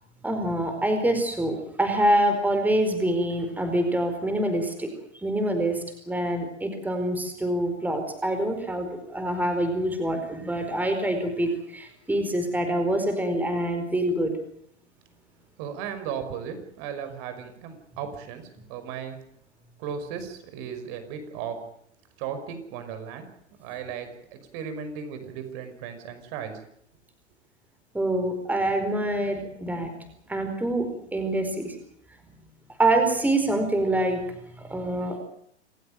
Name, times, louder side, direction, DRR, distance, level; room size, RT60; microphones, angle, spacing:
voice 1, 0.2-14.3 27.9-31.7 32.8-34.2 34.6-35.2, right 1 dB, 5° right, 6 dB, 4.5 m, -26 dB
voice 2, 15.6-19.2 19.8-21.6 22.2-23.3 23.6-26.5, right 7 dB, 40° right, 9 dB, 5.7 m, -36 dB
27.5 x 15.5 x 8.9 m, 0.70 s
hypercardioid pair, 120°, 35 cm